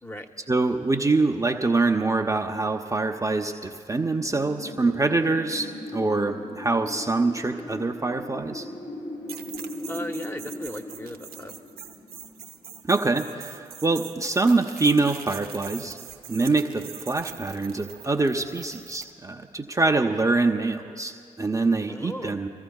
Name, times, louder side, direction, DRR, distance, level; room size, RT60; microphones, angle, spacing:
voice 1, 0.5-8.7 12.9-16.0 16.3-22.5, right 3 dB, 20° right, 2 dB, 0.7 m, -25 dB
Wind, 4.2-12.9, left 1 dB, 85° left, 2.3 m, -38 dB
sound 1, 9.3-19.1, right 8 dB, 60° right, 0.7 m, -43 dB
voice 2, 9.9-11.5 21.9-22.4, equal, 15° left, 6 dB, 0.9 m, -36 dB
28.0 x 14.0 x 2.4 m, 2.2 s
hypercardioid pair, 45°, 18 cm